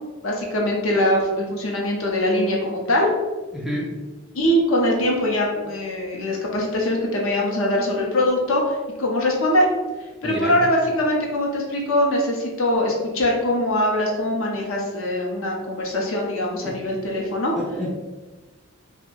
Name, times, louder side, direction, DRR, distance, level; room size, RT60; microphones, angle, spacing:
voice 1, 0.2-3.1 4.3-9.7 10.2-17.5, left 1 dB, 70° left, -1 dB, 0.7 m, -22 dB
voice 2, 3.5-4.0 10.2-10.6 16.6-16.8 17.6-17.9, equal, ahead, -3 dB, 0.3 m, -29 dB
2.6 x 2.2 x 3.7 m, 1.2 s
head